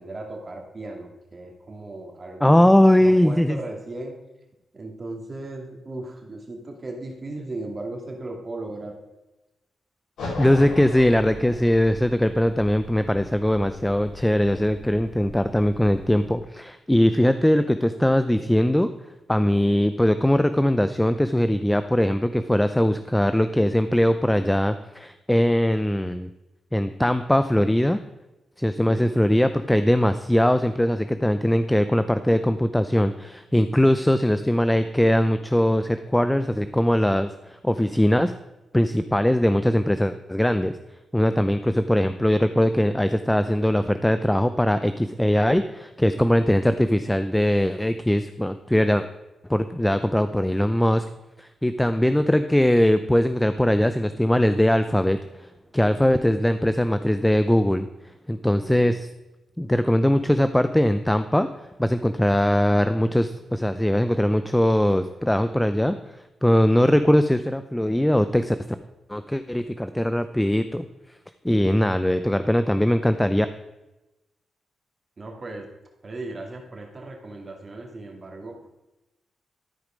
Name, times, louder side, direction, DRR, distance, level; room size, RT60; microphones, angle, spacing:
voice 1, 0.0-2.6 3.0-4.2 4.7-9.0 28.9-29.1 58.5-59.0 75.2-75.7 76.0-78.7, right 2 dB, 35° right, 1 dB, 2.4 m, -36 dB
voice 2, 2.4-3.6 10.4-18.9 19.3-26.3 26.7-28.0 28.6-38.3 38.7-40.8 41.1-49.0 49.5-51.0 51.4-57.9 58.3-59.1 59.6-68.6 69.1-70.9 71.4-73.5, left 1 dB, 5° left, 10 dB, 0.5 m, -21 dB
sound 1, 10.2-16.3, left 2 dB, 80° left, 3.0 m, -39 dB
13.0 x 5.0 x 5.1 m, 1.0 s
cardioid pair, 75°, 0 cm